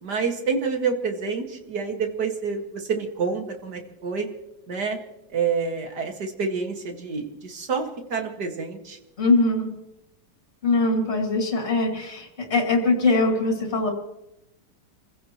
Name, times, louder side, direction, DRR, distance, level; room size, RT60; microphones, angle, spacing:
voice 1, 0.0-4.3 4.7-5.0 5.3-9.0, right 5 dB, 70° right, 3 dB, 2.6 m, -28 dB
voice 2, 9.2-9.8 10.6-13.9, left 2 dB, 40° left, 1 dB, 2.9 m, -22 dB
28.5 x 16.0 x 3.1 m, 0.90 s
omnidirectional pair, 1.9 m